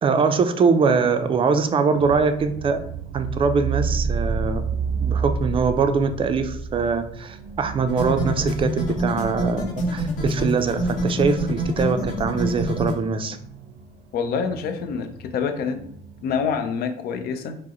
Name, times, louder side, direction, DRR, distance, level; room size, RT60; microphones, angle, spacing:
voice 1, 0.0-2.8 3.1-4.6 5.0-13.4, right 5 dB, 30° right, 9 dB, 0.4 m, -22 dB
sound 1, 1.9-16.6, right 5 dB, 85° right, 0.5 m, -32 dB
sound 2, 7.9-12.9, equal, 50° left, 1.0 m, -26 dB
voice 2, 14.1-15.8 16.2-17.6, left 6 dB, 65° left, 7 dB, 0.5 m, -26 dB
4.6 x 2.0 x 2.9 m, 0.70 s
cardioid pair, 110°, 17 cm